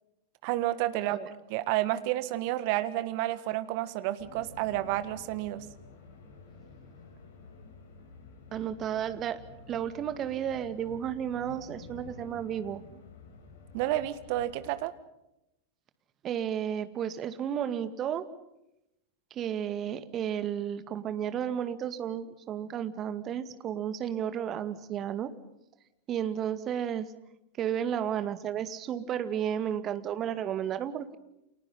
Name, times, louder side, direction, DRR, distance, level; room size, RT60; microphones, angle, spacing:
voice 1, 0.4-1.2 1.5-5.6 13.7-14.9, right 15 dB, 45° right, 13 dB, 1.7 m, -30 dB
sound 1, 4.2-14.8, left 4 dB, 55° left, 5.5 m, -50 dB
voice 2, 8.5-9.4 9.7-12.8 16.2-18.3 19.3-25.3 26.1-27.1 27.6-31.2, right 9 dB, 30° right, 11 dB, 2.0 m, -32 dB
30.0 x 28.0 x 5.7 m, 0.86 s
figure-of-eight pair, 90°, 0 cm